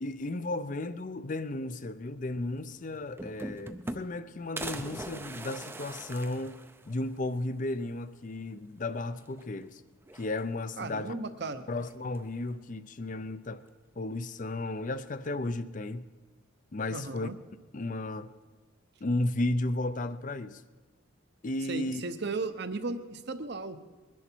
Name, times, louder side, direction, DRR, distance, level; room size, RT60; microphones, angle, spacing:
voice 1, 0.0-6.6 6.9-9.8 10.1-11.1 11.7-13.6 14.0-16.1 16.7-17.3 17.7-18.3 19.0-20.6 21.4-22.0, left 2 dB, 40° left, 0.5 m, -34 dB
sound 1, 2.6-2.7 2.9-4.2 4.6-7.2 7.6-7.7 7.9-8.0 9.2-9.7 10.0-10.8 11.8-12.4, right 2 dB, 10° right, 0.5 m, -41 dB
voice 2, 10.8-11.6 16.9-17.4 21.7-23.8, right 3 dB, 50° right, 0.8 m, -35 dB
21.5 x 10.5 x 4.5 m
head